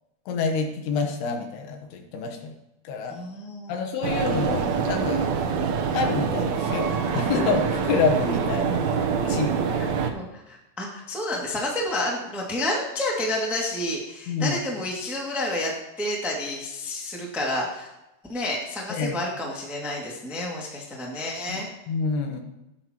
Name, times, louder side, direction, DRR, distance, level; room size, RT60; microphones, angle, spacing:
voice 1, 0.3-2.5 2.8-3.2 3.7-5.3 5.9-9.8 14.3-14.6 18.9-19.2 21.5-21.6 21.9-22.4, left 5 dB, 80° left, 4 dB, 3.2 m, -27 dB
voice 2, 3.1-3.8 9.8-15.7 16.0-17.9 18.3-21.7, left 1 dB, ahead, -2 dB, 0.9 m, -30 dB
sound 1, 4.0-10.1, right 6 dB, 70° right, 1.8 m, -25 dB
17.0 x 9.9 x 3.1 m, 0.93 s
omnidirectional pair, 4.7 m